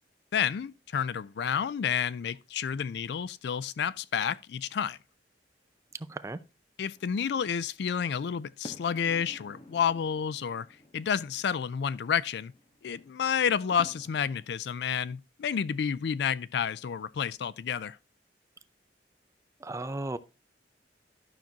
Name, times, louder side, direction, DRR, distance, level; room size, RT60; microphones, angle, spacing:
voice 1, 0.3-5.0 6.8-10.7 10.9-12.5 12.8-18.0, left 7 dB, 70° left, 0.4 m, -30 dB
voice 2, 6.1-6.4 19.6-20.2, right 2 dB, 15° right, 0.5 m, -35 dB
sound 1, 7.0-14.5, left 1 dB, 35° left, 1.2 m, -52 dB
11.5 x 6.0 x 2.8 m
head